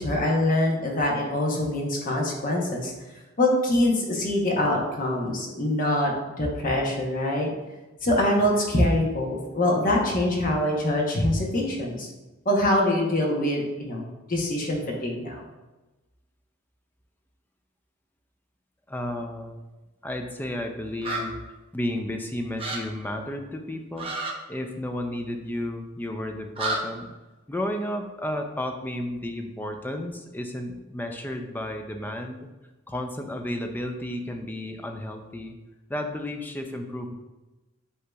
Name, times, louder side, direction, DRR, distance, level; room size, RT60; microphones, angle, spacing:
voice 1, 0.0-2.9 3.4-6.1 6.4-7.5 8.0-12.1 12.4-15.4, left 1 dB, 40° left, -1 dB, 0.9 m, -24 dB
voice 2, 18.9-19.6 20.0-21.4 21.7-24.1 24.5-27.1 27.5-32.5 32.9-35.6 35.9-37.1, left 1 dB, 10° left, 4 dB, 0.4 m, -32 dB
sound 1, 21.0-21.2 22.6-22.8 24.0-24.3 26.5-26.8, right 3 dB, 25° right, 0.7 m, -29 dB
7.8 x 2.8 x 2.3 m, 1.1 s
head